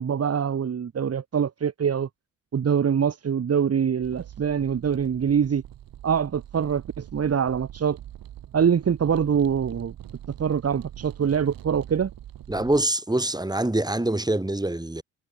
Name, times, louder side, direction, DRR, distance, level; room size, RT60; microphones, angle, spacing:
voice 1, 0.0-2.1 2.5-5.6 6.0-8.0 8.5-9.9 10.4-12.1, right 7 dB, 35° right, 1.7 m, -24 dB
sound 1, 4.0-12.9, right 12 dB, 60° right, 3.6 m, -43 dB
voice 2, 12.5-15.0, right 1 dB, 10° right, 4.6 m, -25 dB
hypercardioid pair, 45°, 39 cm